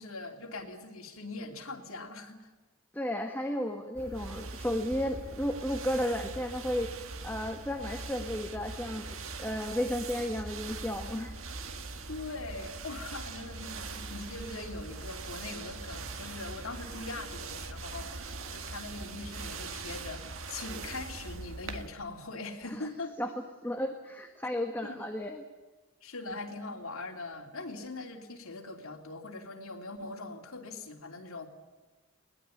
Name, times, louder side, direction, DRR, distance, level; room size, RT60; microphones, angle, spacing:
voice 1, 0.0-2.5 12.1-23.1 24.8-25.0 26.0-31.5, left 3 dB, 80° left, 2 dB, 3.0 m, -41 dB
voice 2, 2.9-11.3 22.7-22.9 23.2-23.3 23.6-25.4, left 1 dB, 10° left, 4 dB, 1.5 m, -33 dB
sound 1, 4.0-21.9, right 3 dB, 70° right, 1.7 m, -41 dB
21.5 x 19.0 x 9.9 m, 1.2 s
head